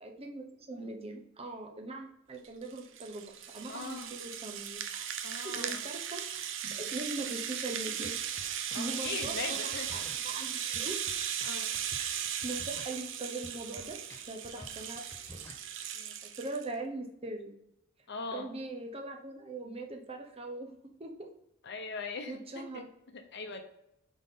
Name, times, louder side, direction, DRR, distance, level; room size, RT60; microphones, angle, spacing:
voice 1, 0.0-5.1 5.4-8.1 8.7-9.3 9.6-11.3 12.0-14.0 14.3-15.0 15.3-15.4 15.9-17.5 18.3-20.7 21.0-21.3 22.3-22.9, right 2 dB, 25° right, 3 dB, 0.9 m, -41 dB
Rattle (instrument), 2.4-16.7, right 9 dB, 60° right, 0.6 m, -37 dB
voice 2, 3.7-4.1 5.2-5.8 8.7-9.9 11.4-11.7 14.6-14.7 18.1-18.5 21.6-22.8 23.1-23.6, left 4 dB, 50° left, 5 dB, 0.9 m, -40 dB
sound 1, 7.9-15.9, left 1 dB, 10° left, 0.7 m, -53 dB
9.6 x 4.1 x 3.7 m, 0.82 s
head